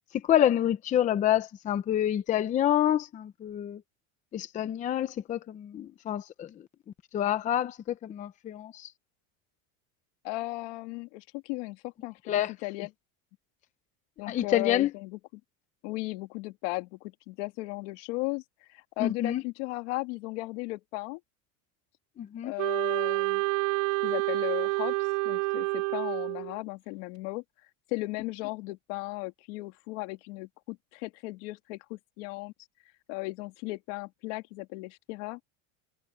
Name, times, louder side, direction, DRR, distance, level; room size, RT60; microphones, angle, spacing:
voice 1, 0.3-3.8 4.3-6.5 7.1-8.9 12.3-12.5 14.3-14.9 19.0-19.4 22.2-22.5, left 11 dB, 20° left, 0.6 m, -27 dB
voice 2, 10.2-12.9 14.2-15.2 15.8-18.4 18.7-21.2 22.4-23.4 24.0-24.9 25.2-27.4 27.9-32.5 33.1-35.4, left 23 dB, 70° left, 2.7 m, -36 dB
Wind instrument woodwind instrument, 22.6-26.6, right 26 dB, 80° right, 2.7 m, -28 dB
cardioid pair, 170°, 38 cm